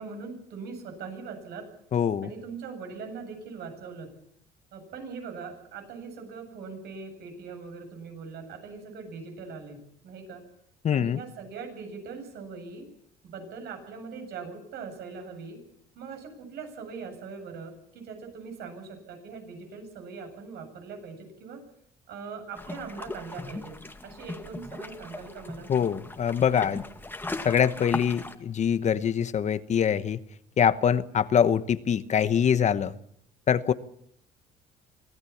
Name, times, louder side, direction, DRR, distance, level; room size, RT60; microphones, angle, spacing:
voice 1, 0.0-1.7 2.2-4.1 4.7-10.4 10.9-12.9 13.2-15.6 15.9-21.6 22.1-23.8 24.0-25.7, right 5 dB, 75° right, 5 dB, 7.9 m, -41 dB
voice 2, 1.9-2.3 10.8-11.2 25.7-26.8 27.4-30.2 30.6-32.9 33.5-33.7, left 8 dB, 45° left, 13 dB, 1.1 m, -24 dB
sound 1, 22.6-28.4, left 2 dB, 10° left, 2.0 m, -38 dB
25.0 x 16.5 x 7.2 m, 0.70 s
cardioid pair, 110°, 17 cm